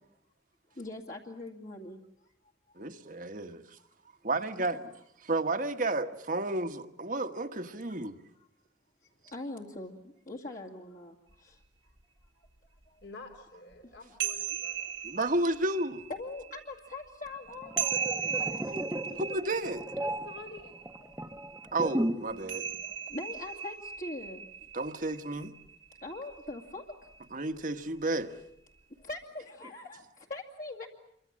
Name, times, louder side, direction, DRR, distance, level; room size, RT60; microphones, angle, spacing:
voice 1, 0.8-2.0 2.7-2.8 3.8-3.9 9.2-11.6 12.4-12.5 12.9-13.0 16.1-18.6 21.6-21.7 22.8-24.5 26.0-27.1 29.0-30.9, left 2 dB, 50° left, 2.3 m, -42 dB
voice 2, 2.8-3.6 4.2-4.8 5.2-8.2 15.0-16.0 18.7-18.8 19.2-19.8 21.7-22.6 24.7-25.5 27.3-28.3, right 2 dB, 45° right, 1.4 m, -32 dB
sound 1, 11.3-11.4 12.0-12.1 12.5-12.6 13.7-27.2, right 8 dB, 85° right, 2.0 m, -38 dB
voice 3, 13.0-14.8 18.3-18.8 20.0-20.8, left 3 dB, 70° left, 3.7 m, -48 dB
sound 2, 17.5-22.4 22.6-22.9, right 1 dB, 10° right, 1.1 m, -35 dB
28.0 x 24.5 x 7.5 m
head